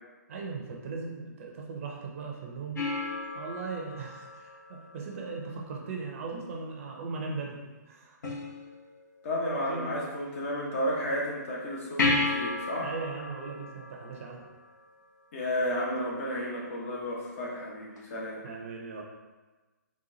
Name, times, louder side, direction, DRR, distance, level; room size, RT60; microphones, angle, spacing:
voice 1, 0.3-8.2 9.7-10.0 12.8-14.5 18.4-19.0, right 4 dB, 45° right, -1 dB, 0.8 m, -38 dB
sound 1, 2.7-5.4 8.2-9.2 12.0-14.9 18.0-18.1, left 2 dB, 65° left, 1.3 m, -33 dB
voice 2, 9.2-12.9 15.3-18.4, equal, 45° left, -3 dB, 1.2 m, -32 dB
4.1 x 2.5 x 3.9 m, 1.2 s
hypercardioid pair, 140°, 10 cm